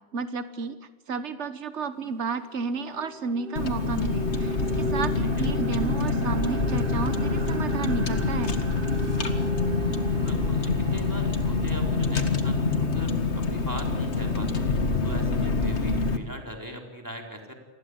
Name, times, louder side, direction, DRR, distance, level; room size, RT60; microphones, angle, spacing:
voice 1, 0.1-0.8 1.1-8.5, right 5 dB, 85° right, 11 dB, 1.5 m, -32 dB
sound 1, 2.0-2.1 2.6-14.6, right 3 dB, 50° right, 1.6 m, -36 dB
Car, 3.6-16.2, left 4 dB, 75° left, 2.1 m, -26 dB
voice 2, 10.1-14.7 15.0-17.5, equal, 15° right, 1 dB, 4.4 m, -40 dB
28.5 x 20.5 x 8.1 m, 1.1 s
omnidirectional pair, 1.2 m